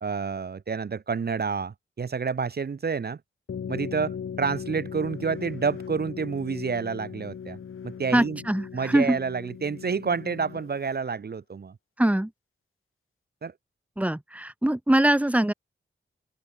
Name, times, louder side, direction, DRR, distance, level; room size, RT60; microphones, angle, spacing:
voice 1, 0.0-3.2 3.7-7.6 7.8-8.4 8.7-11.7 13.4-13.5, right 5 dB, 50° right, 1.0 m, -29 dB
sound 1, 3.5-11.0, left 7 dB, 85° left, 2.9 m, -39 dB
voice 2, 8.1-9.2 12.0-12.3 14.0-15.5, right 1 dB, 5° right, 1.3 m, -23 dB
open air
wide cardioid pair, 85°, 21 cm